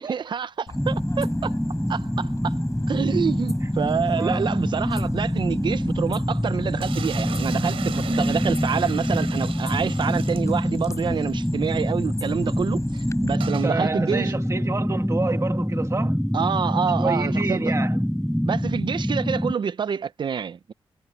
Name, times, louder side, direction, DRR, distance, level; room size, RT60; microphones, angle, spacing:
voice 1, 0.0-1.6 1.9-2.6 2.9-14.3 16.3-17.6 18.4-20.7, right 7 dB, 55° right, 0.6 m, -27 dB
sound 1, 0.7-13.4, left 3 dB, 35° left, 6.5 m, -38 dB
sound 2, 0.7-19.5, equal, ahead, 0.7 m, -25 dB
voice 2, 4.1-4.5 13.5-16.2 17.0-18.0, right 3 dB, 30° right, 1.4 m, -29 dB
sound 3, 6.8-11.0 11.3-11.4 11.6-11.7 13.4-13.7, right 8 dB, 85° right, 3.2 m, -37 dB
wide cardioid pair, 110°, 9 cm